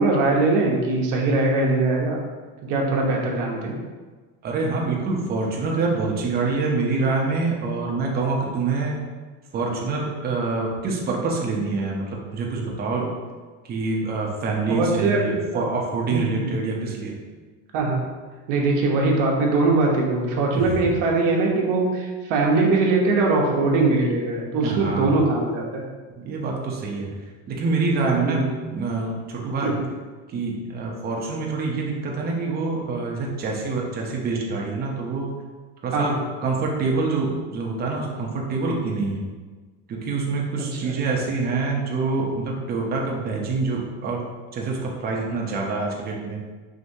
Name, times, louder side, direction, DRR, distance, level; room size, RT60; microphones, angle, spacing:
voice 1, 0.0-2.2 2.6-3.8 14.7-15.6 16.1-16.5 17.7-18.0 18.5-25.8 28.2-28.4 29.6-29.8 35.9-36.2 40.7-41.0, right 3 dB, 60° right, -1 dB, 1.0 m, -21 dB
voice 2, 4.4-9.0 9.5-13.1 13.7-17.2 20.5-20.6 24.6-25.2 26.2-27.2 27.5-29.8 30.3-35.3 35.8-39.3 39.9-44.3 44.5-46.4, right 3 dB, 25° right, -1 dB, 0.7 m, -26 dB
4.9 x 2.7 x 2.6 m, 1.4 s
cardioid pair, 140°, 36 cm